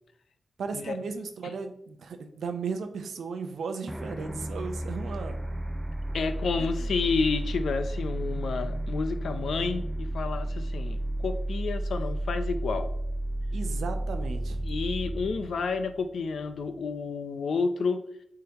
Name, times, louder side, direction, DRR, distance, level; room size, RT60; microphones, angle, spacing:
voice 1, 0.6-5.4 6.6-6.9 13.5-14.6, right 5 dB, 85° right, 7 dB, 0.7 m, -36 dB
sound 1, 3.9-16.6, right 1 dB, 5° right, 0.3 m, -32 dB
voice 2, 6.1-12.9 14.6-18.1, left 4 dB, 80° left, 9 dB, 0.5 m, -30 dB
8.5 x 3.8 x 2.9 m, 0.69 s
cardioid pair, 85°, 0 cm